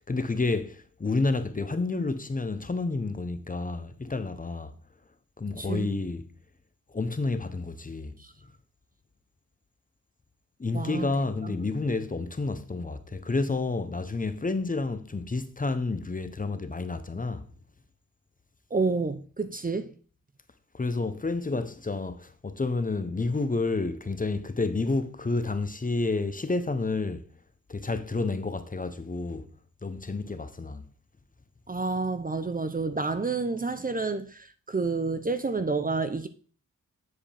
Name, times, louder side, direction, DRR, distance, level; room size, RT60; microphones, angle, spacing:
voice 1, 0.1-4.7 5.4-6.3 6.9-8.1 10.6-17.5 20.7-27.2 27.7-29.5 29.8-30.8, left 3 dB, 25° left, 0.8 m, -30 dB
voice 2, 5.6-5.9 10.7-11.1 11.4-11.5 18.7-19.9 31.7-36.3, right 4 dB, 25° right, 0.6 m, -29 dB
9.6 x 4.8 x 3.4 m
cardioid pair, 60°, 34 cm